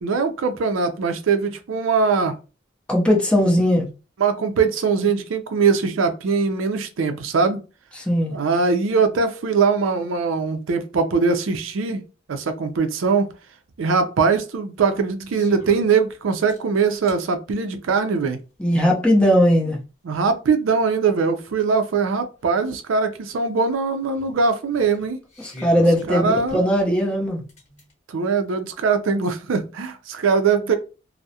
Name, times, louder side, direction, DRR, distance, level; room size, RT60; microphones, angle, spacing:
voice 1, 0.0-2.4 4.2-7.6 8.3-12.0 12.3-13.3 13.8-18.4 20.0-25.2 26.1-26.7 28.1-30.8, right 5 dB, 80° right, 0.4 m, -21 dB
voice 2, 2.9-3.9 8.1-8.4 18.6-19.8 25.6-27.4, equal, 5° left, 0.6 m, -18 dB
sound 1, 15.3-15.9 16.5-17.2 18.7-18.8 21.5-21.6 21.8-21.9 22.4-22.5 24.2-26.0 26.5-27.9, left 2 dB, 35° left, 1.0 m, -41 dB
2.3 x 2.0 x 2.7 m
head